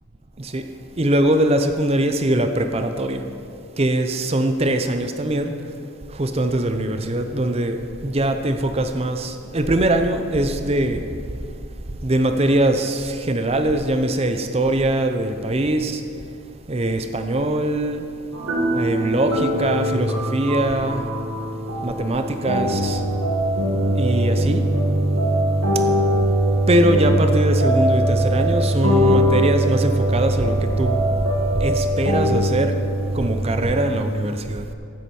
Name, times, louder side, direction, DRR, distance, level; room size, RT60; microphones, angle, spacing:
voice 1, 1.0-3.2 3.8-5.6 6.1-11.1 12.0-16.0 16.7-18.0 18.7-21.1 21.8-23.0 23.9-24.7 26.7-31.0 31.5-32.8 33.1-34.7, right 1 dB, 30° right, 0.6 m, -22 dB
sound 1, 18.3-33.7, right 1 dB, 90° right, 2.0 m, -21 dB
14.5 x 7.9 x 4.4 m
head